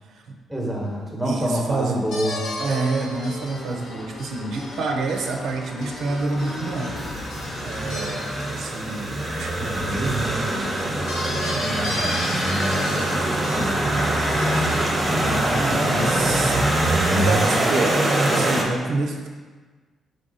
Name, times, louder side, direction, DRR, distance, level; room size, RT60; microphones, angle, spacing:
voice 1, 0.5-2.4, equal, ahead, -2 dB, 0.9 m, -26 dB
sound 1, 0.8-1.1 2.1-9.1 11.1-15.3 17.5-18.2 18.5-18.6, left 1 dB, 90° left, 0.7 m, -35 dB
voice 2, 1.2-2.1 2.6-6.9 7.2-7.3 7.6-13.1 13.4-14.4 15.1-16.6 17.1-19.3, right 3 dB, 75° right, 2 dB, 0.5 m, -29 dB
sound 2, 1.9-15.4 15.7-15.8, left 2 dB, 40° left, 0.4 m, -41 dB
sound 3, 6.4-18.6, right 1 dB, 20° right, 0.7 m, -23 dB
4.1 x 3.3 x 3.8 m, 1.4 s
cardioid pair, 120°, 0 cm